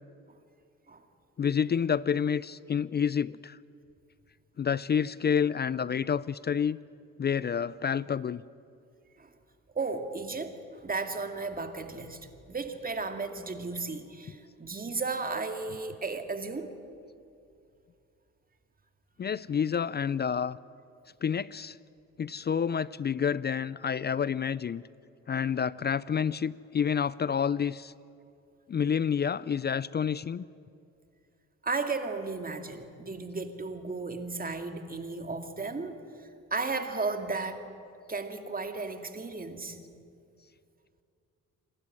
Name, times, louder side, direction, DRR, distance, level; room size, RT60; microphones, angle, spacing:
voice 1, 1.4-3.6 4.6-6.8 7.2-8.4 19.2-20.6 21.2-21.8 22.2-24.8 25.3-27.9 28.7-30.4, left 7 dB, 35° left, 20 dB, 0.4 m, -29 dB
voice 2, 9.7-12.2 12.5-16.7 31.6-36.0 36.5-37.6 38.1-39.8, right 3 dB, 30° right, 6 dB, 2.3 m, -34 dB
27.5 x 12.0 x 9.8 m, 2.5 s
cardioid pair, 70°, 31 cm